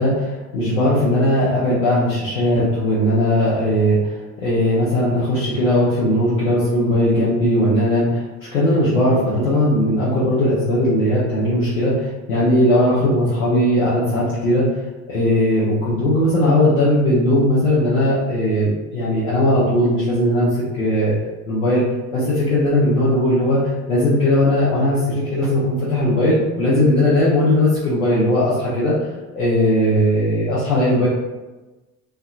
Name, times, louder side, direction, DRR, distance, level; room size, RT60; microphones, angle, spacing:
voice 1, 0.0-14.7 15.1-20.5 20.7-21.1 21.5-21.8 22.1-23.6 23.9-28.9 29.3-31.1, left 1 dB, 85° left, -10 dB, 0.6 m, -18 dB
2.6 x 2.1 x 2.3 m, 1.1 s
figure-of-eight pair, 50°, 40 cm